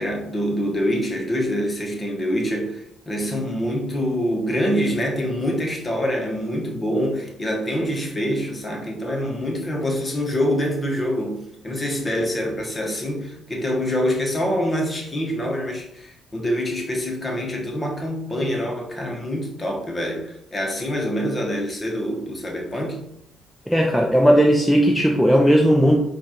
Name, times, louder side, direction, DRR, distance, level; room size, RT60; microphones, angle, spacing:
voice 1, 0.0-23.1, equal, 25° left, 1.2 m, -25 dB
voice 2, 23.7-26.0, equal, ahead, 0.6 m, -16 dB
4.2 x 2.5 x 4.4 m
cardioid pair, 90°, 0 cm